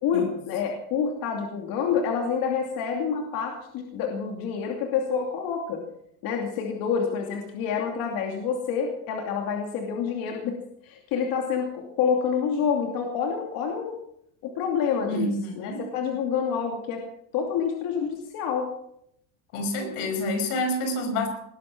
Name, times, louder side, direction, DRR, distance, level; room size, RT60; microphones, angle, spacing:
voice 1, 0.0-5.8 6.2-10.6 10.8-14.0 14.4-17.0 17.3-18.7, left 6 dB, 50° left, 2 dB, 2.8 m, -28 dB
voice 2, 15.1-15.8 19.5-21.3, left 1 dB, 85° left, 6 dB, 5.4 m, -28 dB
19.5 x 11.5 x 6.1 m, 0.73 s
cardioid pair, 165°, 44 cm